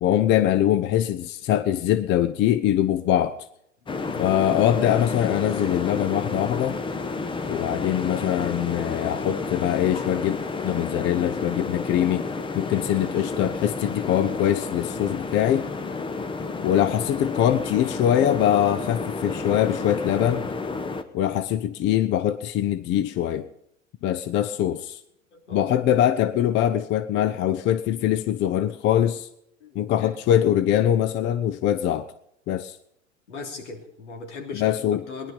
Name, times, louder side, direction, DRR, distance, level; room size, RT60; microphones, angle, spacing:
voice 1, 0.0-3.4 4.2-6.8 7.5-10.4 10.6-15.7 16.6-20.5 21.1-23.5 24.0-25.0 25.5-29.3 29.7-32.1 32.5-32.8 34.5-35.0, left 11 dB, 30° left, 0.7 m, -23 dB
sound 1, 3.9-21.0, left 3 dB, 15° left, 0.9 m, -31 dB
voice 2, 25.3-25.7 29.6-30.1 33.3-34.6 34.9-35.3, left 4 dB, 70° left, 3.3 m, -38 dB
20.0 x 11.0 x 5.3 m
figure-of-eight pair, 95°, 36 cm